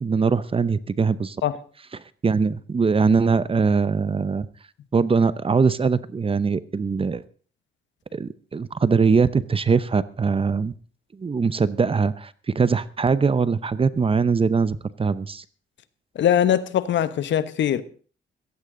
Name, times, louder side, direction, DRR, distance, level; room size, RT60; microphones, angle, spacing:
voice 1, 0.0-1.4 1.9-4.5 4.9-7.2 8.1-10.7 11.2-15.4, right 5 dB, 30° right, 0.8 m, -22 dB
voice 2, 16.1-17.8, left 10 dB, 65° left, 1.1 m, -21 dB
15.5 x 15.0 x 3.9 m
cardioid pair, 90°, 20 cm